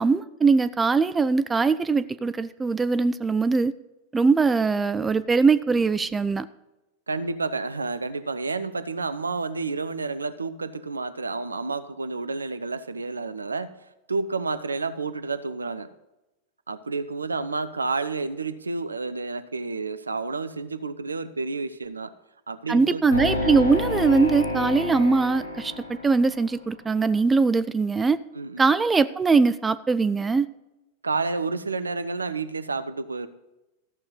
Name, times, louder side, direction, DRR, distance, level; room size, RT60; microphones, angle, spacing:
voice 1, 0.0-3.7 4.1-6.5 22.7-28.2 28.6-30.5, right 4 dB, 15° right, 14 dB, 0.4 m, -21 dB
voice 2, 7.1-13.7 14.1-15.9 16.7-22.1 22.5-23.0 28.3-28.7 31.0-33.3, right 3 dB, 75° right, 12 dB, 0.6 m, -30 dB
sound 1, 23.1-26.6, left 2 dB, 75° left, 2.5 m, -29 dB
14.0 x 6.6 x 5.6 m, 0.98 s
figure-of-eight pair, 90°, 0 cm